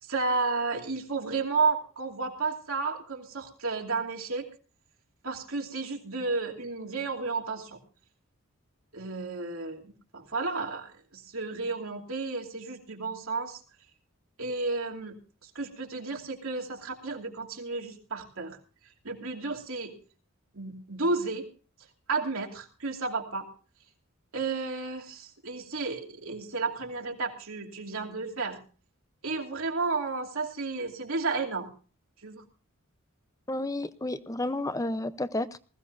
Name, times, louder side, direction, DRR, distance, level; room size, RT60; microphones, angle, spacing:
voice 1, 0.0-4.5 5.2-7.8 8.9-13.6 14.4-18.6 19.0-19.9 20.5-21.5 22.1-23.5 24.3-28.6 29.2-31.7 32.2-32.4, right 3 dB, 75° right, 0 dB, 2.8 m, -32 dB
voice 2, 33.5-35.6, left 1 dB, 15° left, 14 dB, 0.7 m, -31 dB
20.0 x 15.5 x 2.6 m, 0.37 s
head